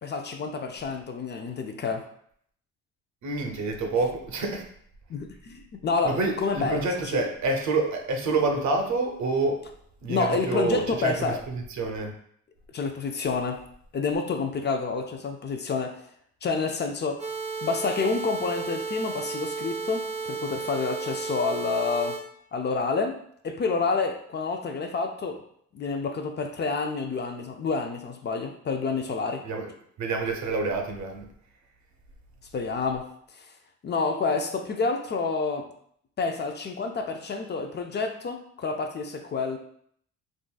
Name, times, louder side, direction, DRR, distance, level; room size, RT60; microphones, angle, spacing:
voice 1, 0.0-2.1 5.1-6.8 7.1-7.2 10.1-11.4 12.7-13.6 13.9-16.0 16.4-17.2 17.6-22.2 22.5-23.2 23.4-25.4 25.7-29.4 32.5-33.1 33.4-33.5 33.8-35.7 36.2-39.6, left 4 dB, 35° left, 5 dB, 0.4 m, -28 dB
voice 2, 3.2-4.7 6.0-9.7 10.0-12.1 29.4-31.3, right 3 dB, 70° right, 3 dB, 0.7 m, -28 dB
sound 1, 17.2-22.2, right 4 dB, 25° right, 0.6 m, -33 dB
3.6 x 2.4 x 2.3 m, 0.65 s
cardioid pair, 90°, 30 cm